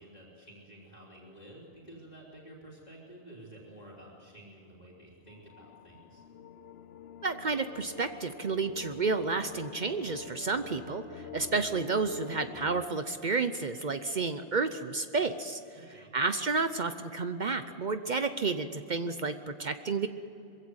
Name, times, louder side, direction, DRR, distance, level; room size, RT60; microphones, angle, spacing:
voice 1, 0.0-6.2 15.7-16.2, right 1 dB, 40° left, -6 dB, 3.6 m, -51 dB
sound 1, 5.3-12.9, left 7 dB, 75° left, 1.0 m, -47 dB
voice 2, 7.2-15.6 16.1-20.1, right 4 dB, 50° right, 10 dB, 0.8 m, -31 dB
22.0 x 16.0 x 8.0 m, 2.9 s
omnidirectional pair, 1.1 m